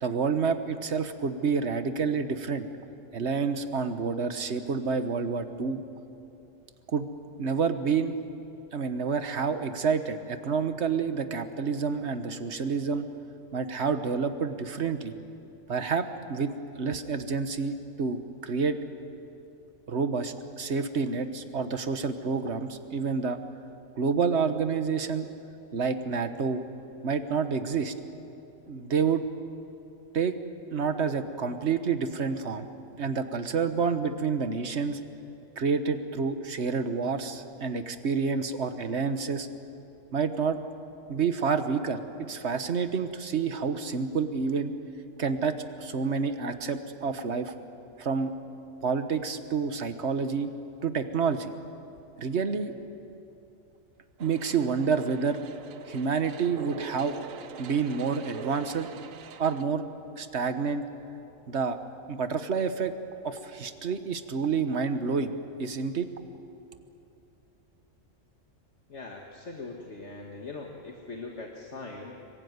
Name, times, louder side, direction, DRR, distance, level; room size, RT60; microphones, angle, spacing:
voice 1, 0.0-2.7 3.1-5.8 6.9-7.1 7.4-8.1 8.7-13.1 13.5-15.1 15.7-18.8 19.9-23.4 23.9-25.3 25.7-26.6 27.0-27.9 28.7-29.2 30.1-30.4 30.7-32.7 33.0-35.0 35.6-39.5 40.1-40.6 41.1-44.7 45.2-47.5 48.0-48.3 48.8-50.5 50.8-51.5 52.2-52.7 54.2-55.4 55.9-57.2 57.6-58.9 59.4-59.8 60.2-60.9 61.5-61.8 62.1-62.9 63.2-66.1, right 5 dB, 60° right, 9 dB, 1.6 m, -28 dB
sound 1, 54.2-59.6, right 8 dB, 90° right, 1.3 m, -44 dB
voice 2, 68.9-72.1, left 3 dB, 60° left, 1 dB, 2.0 m, -41 dB
26.5 x 22.5 x 9.5 m, 2.8 s
omnidirectional pair, 1.3 m